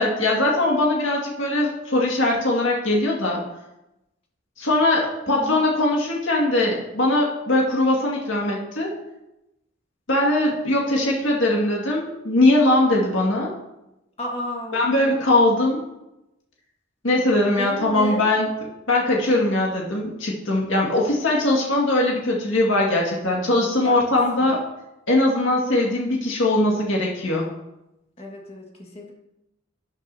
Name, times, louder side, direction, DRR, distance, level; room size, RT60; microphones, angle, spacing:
voice 1, 0.0-3.4 4.6-8.9 10.1-13.5 14.7-15.8 17.0-18.5 18.9-24.6 25.1-27.5, left 2 dB, 75° left, -2 dB, 2.0 m, -21 dB
voice 2, 5.3-5.6 14.2-14.8 17.6-18.3 23.7-24.0 24.4-24.5 28.2-29.1, left 1 dB, 30° left, 0 dB, 1.7 m, -33 dB
12.5 x 9.9 x 2.8 m, 0.91 s
head